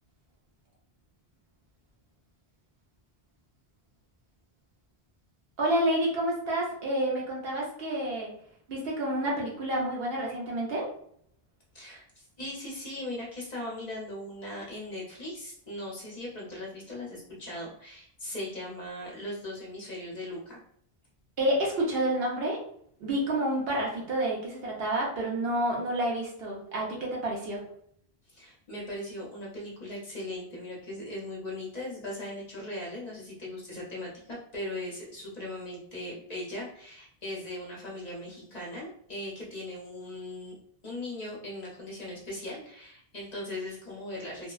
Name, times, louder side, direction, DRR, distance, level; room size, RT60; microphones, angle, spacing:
voice 1, 5.6-8.3 8.7-10.9 21.4-22.6 23.0-27.6, right 1 dB, 70° right, -3 dB, 1.0 m, -29 dB
voice 2, 11.7-20.6 28.3-40.5 40.8-44.5, left 1 dB, 45° left, -4 dB, 0.8 m, -39 dB
2.8 x 2.1 x 2.3 m, 0.66 s
omnidirectional pair, 1.1 m